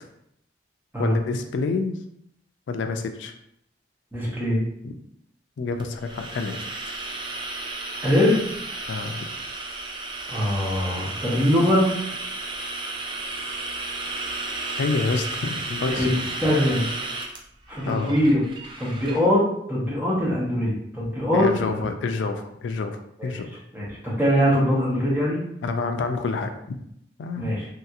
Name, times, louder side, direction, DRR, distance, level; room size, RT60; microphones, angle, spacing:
voice 1, 1.0-2.0 2.7-3.3 4.8-5.0 5.6-6.9 8.9-9.3 14.8-16.1 17.9-18.2 21.3-23.5 25.6-26.8 27.2-27.5, left 4 dB, 80° left, 7 dB, 0.3 m, -28 dB
voice 2, 4.1-4.6 8.0-8.4 10.3-11.9 15.9-16.9 17.7-18.4 18.8-19.4 19.7-21.8 23.2-23.4 23.7-25.4 27.4-27.7, left 1 dB, 10° right, -6 dB, 0.9 m, -22 dB
sound 1, 5.8-19.2, right 2 dB, 25° right, 0.4 m, -33 dB
3.2 x 2.8 x 2.4 m, 0.74 s
head